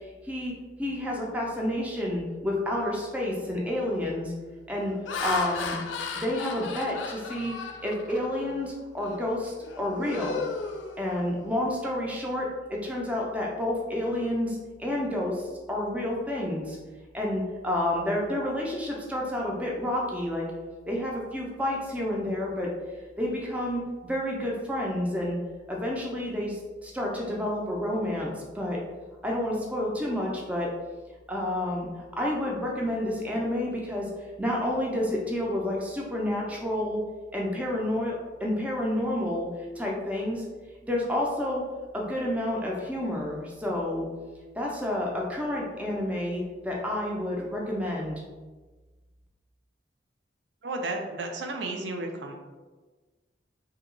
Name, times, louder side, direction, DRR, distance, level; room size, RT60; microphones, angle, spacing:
voice 1, 0.8-4.3 4.7-4.9 5.2-5.8 6.1-7.5 7.8-10.4 11.0-16.8 17.1-20.5 20.9-22.7 23.2-25.4 25.7-28.8 29.2-30.7 31.3-31.9 32.2-34.1 34.4-37.0 37.3-39.5 39.8-40.4 40.8-41.6 41.9-44.1 44.5-48.2, left 1 dB, 10° right, -3 dB, 0.4 m, -29 dB
Laughter, 3.2-3.3 3.8-4.1 4.7-8.5 9.0-9.2 9.6-11.5, left 4 dB, 85° left, 0.4 m, -36 dB
voice 2, 50.6-52.3, right 2 dB, 80° right, 3 dB, 0.5 m, -33 dB
2.8 x 2.3 x 3.7 m, 1.3 s
head